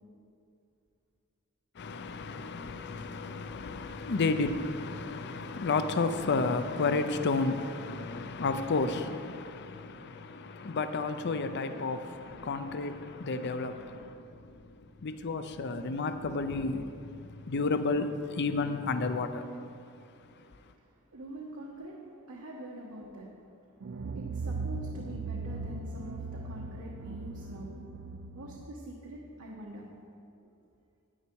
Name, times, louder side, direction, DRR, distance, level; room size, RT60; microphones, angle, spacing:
voice 1, 1.8-14.5 15.0-17.1 17.5-19.5, left 3 dB, 50° left, 0.5 m, -32 dB
voice 2, 21.1-21.9 22.3-23.3 24.2-27.7 28.3-29.9, right 1 dB, 80° right, 1.2 m, -44 dB
sound 1, 23.8-28.7, right 3 dB, 55° right, 0.4 m, -38 dB
9.9 x 9.8 x 4.7 m
head